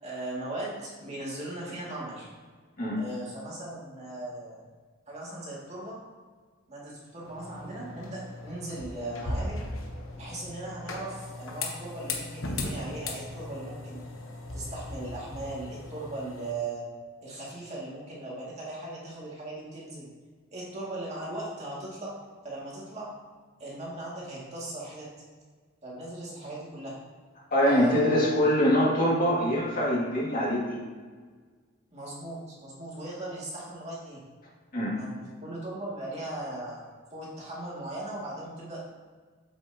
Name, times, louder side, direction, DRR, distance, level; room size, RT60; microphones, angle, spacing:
voice 1, 0.0-2.3 3.0-4.6 5.1-6.0 6.7-9.6 10.1-14.0 14.5-16.9 17.2-20.1 20.5-22.2 22.4-23.1 23.6-25.1 25.8-27.0 27.6-28.4 31.9-34.2 34.9-38.9, right 1 dB, 35° right, -6 dB, 2.1 m, -38 dB
sound 1, 7.2-16.5, left 2 dB, 80° left, 1.1 m, -38 dB
voice 2, 27.5-30.8 34.7-35.0, equal, 45° left, -5 dB, 2.1 m, -24 dB
8.1 x 6.9 x 2.8 m, 1.5 s
head